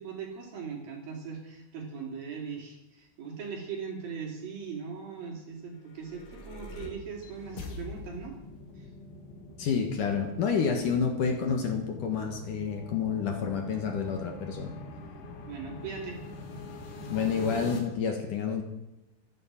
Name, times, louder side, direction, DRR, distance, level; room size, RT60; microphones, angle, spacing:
voice 1, 0.0-8.4 8.8-8.9 15.4-16.2, right 6 dB, 55° right, 0 dB, 4.3 m, -39 dB
sound 1, 5.8-17.8, left 2 dB, 80° left, 4.7 m, -44 dB
voice 2, 9.6-14.7 17.1-18.6, left 6 dB, 60° left, 4 dB, 2.5 m, -29 dB
14.0 x 11.5 x 7.6 m, 0.95 s
omnidirectional pair, 5.3 m